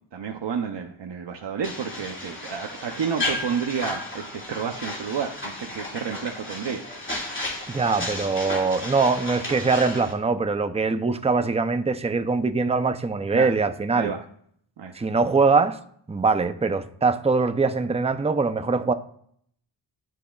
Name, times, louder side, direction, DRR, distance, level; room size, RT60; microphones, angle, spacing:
voice 1, 0.1-6.8 13.3-13.5 13.9-14.2 14.8-15.1, right 6 dB, 75° right, 0.7 m, -30 dB
sound 1, 1.6-10.1, left 1 dB, 25° left, 2.3 m, -33 dB
voice 2, 7.7-14.1 14.9-15.8 16.1-18.9, right 4 dB, 15° right, 0.4 m, -22 dB
11.0 x 4.7 x 2.3 m
wide cardioid pair, 60°, 44 cm